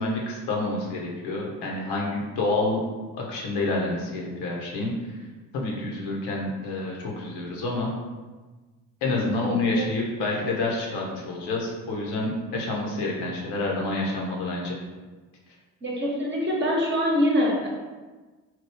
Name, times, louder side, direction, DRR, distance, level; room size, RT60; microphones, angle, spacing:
voice 1, 0.0-2.8 3.2-4.9 5.5-7.9 9.0-14.8, left 2 dB, 65° left, -1 dB, 0.8 m, -28 dB
voice 2, 15.8-17.7, equal, 25° right, -3 dB, 1.0 m, -24 dB
2.9 x 2.3 x 3.3 m, 1.3 s
hypercardioid pair, 50°, 45 cm